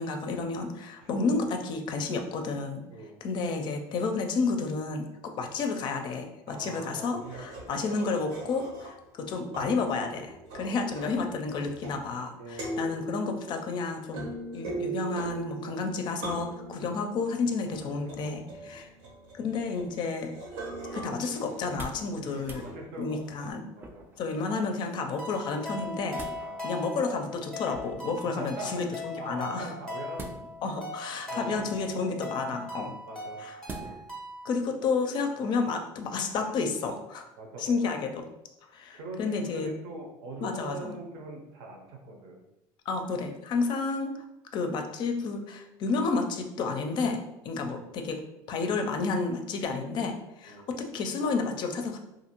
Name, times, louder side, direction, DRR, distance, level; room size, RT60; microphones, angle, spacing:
voice 1, 0.0-2.8 3.2-18.9 19.4-20.3 20.9-22.6 23.0-23.6 24.2-26.2 26.6-29.7 30.6-32.9 33.4-33.6 34.4-37.3 37.6-38.2 38.7-39.7 40.4-40.9 42.9-44.1 44.5-47.2 47.4-52.0, left 4 dB, 50° left, 5 dB, 0.4 m, -31 dB
voice 2, 6.5-7.8 10.5-10.8 12.4-12.9 16.8-17.0 17.8-18.0 18.2-18.8 22.2-24.0 26.4-26.6 28.2-30.3 31.1-31.7 33.1-33.4 37.4-37.7 38.9-42.4 50.5-50.7, right 2 dB, 70° right, 2 dB, 0.7 m, -42 dB
sound 1, 7.2-9.2 9.5-12.3 12.5-23.5, right 3 dB, 90° right, 1.0 m, -41 dB
sound 2, 21.6-22.1 22.4-22.7 23.8-24.3 25.7-26.4 27.6-28.1 30.1-30.8 31.5-32.0 33.7-34.1 34.6-34.7, right 2 dB, 20° right, 0.3 m, -43 dB
sound 3, 25.2-34.6, left 2 dB, 5° left, 0.7 m, -40 dB
2.5 x 2.5 x 2.9 m, 0.89 s
supercardioid pair, 115°, 10 cm